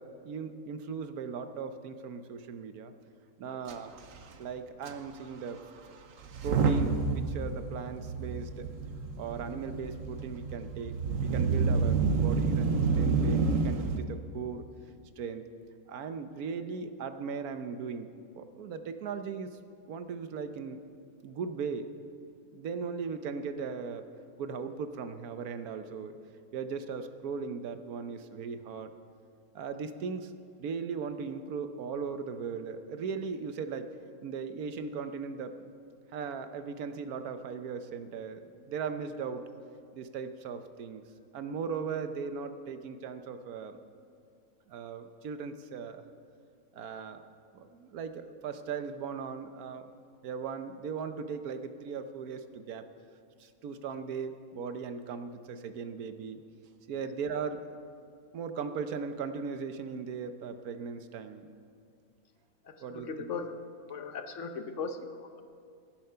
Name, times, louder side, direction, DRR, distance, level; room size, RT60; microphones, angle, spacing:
voice 1, 0.0-2.9 3.4-3.9 4.4-5.6 6.4-8.7 9.2-14.7 15.2-15.4 15.9-18.1 18.4-19.6 19.9-20.8 21.2-21.9 22.5-24.0 24.4-26.2 26.5-28.9 29.5-30.3 30.6-33.9 34.2-35.7 36.1-39.4 39.9-41.0 41.3-43.8 44.7-46.0 46.7-47.2 47.5-49.9 50.2-52.9 53.4-56.4 56.9-57.8 58.3-61.5 62.8-63.1, right 5 dB, 80° right, 9 dB, 1.3 m, -38 dB
Motor vehicle (road) / Engine starting / Accelerating revving vroom, 3.7-3.8 4.0-4.2 4.9-5.0 6.2-14.0, right 4 dB, 65° right, 1.2 m, -29 dB
voice 2, 62.6-63.6 63.9-65.4, left 4 dB, 60° left, 8 dB, 1.1 m, -39 dB
17.0 x 10.5 x 5.6 m, 2.3 s
omnidirectional pair, 1.6 m